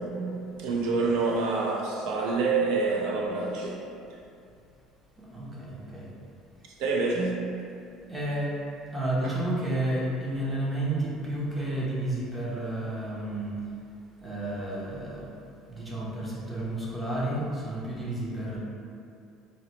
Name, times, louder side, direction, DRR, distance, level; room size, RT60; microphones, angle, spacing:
voice 1, 0.0-3.8 6.8-7.5 9.2-9.3, right 3 dB, 75° right, -1 dB, 0.5 m, -27 dB
voice 2, 5.2-6.1 8.1-8.6 8.9-13.6 14.2-15.3 15.7-18.6, right 1 dB, 10° right, -5 dB, 0.6 m, -31 dB
3.8 x 2.0 x 2.9 m, 2.5 s
cardioid pair, 155°, 0 cm